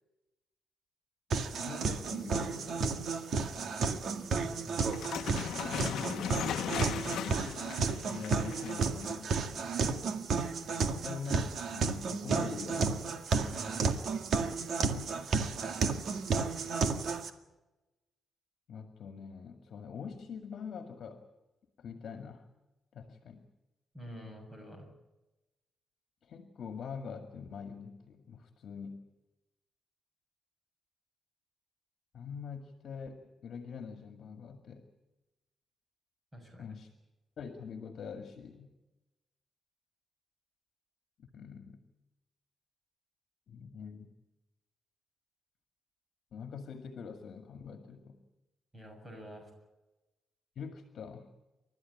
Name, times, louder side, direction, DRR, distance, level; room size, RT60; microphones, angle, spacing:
voice 1, 1.3-3.0 8.0-9.6 10.7-13.0 14.8-15.1 18.7-21.2 21.8-22.5 22.9-23.5 26.2-29.1 32.1-34.9 36.6-36.9 37.4-38.7 41.2-41.9 43.5-44.1 46.3-48.2 50.6-51.3, left 6 dB, 55° left, 6 dB, 2.1 m, -44 dB
sound 1, 1.3-17.3, right 4 dB, 55° right, 1.8 m, -32 dB
voice 2, 4.4-4.9 5.8-6.4 13.3-13.8 23.9-24.9 36.3-36.7 48.7-49.5, equal, 15° right, 4 dB, 6.7 m, -47 dB
sound 2, 4.9-9.0, left 10 dB, 80° left, 1.0 m, -37 dB
30.0 x 13.5 x 8.7 m, 1.0 s
cardioid pair, 155°, 0 cm